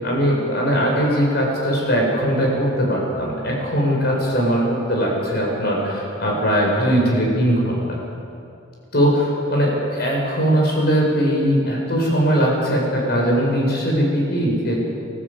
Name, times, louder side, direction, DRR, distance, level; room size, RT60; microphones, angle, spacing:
voice 1, 0.0-8.0 8.9-14.8, equal, 55° left, -2 dB, 7.3 m, -20 dB
29.5 x 14.0 x 8.6 m, 2.6 s
head